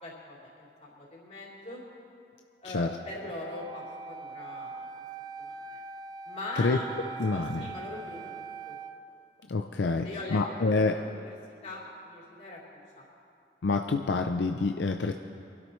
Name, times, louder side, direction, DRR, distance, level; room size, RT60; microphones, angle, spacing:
voice 1, 0.0-1.8 2.6-4.9 5.4-5.6 6.2-6.9 7.3-8.3 8.7-8.8 10.0-11.3 11.6-12.6 13.0-13.1, left 2 dB, 35° left, -6 dB, 3.6 m, -41 dB
Wind instrument woodwind instrument, 3.0-9.0, right 5 dB, 25° right, 0.5 m, -42 dB
voice 2, 7.2-7.7 9.5-10.9 13.6-15.1, left 3 dB, 80° left, 4 dB, 0.5 m, -27 dB
24.5 x 12.5 x 3.2 m, 2.6 s
head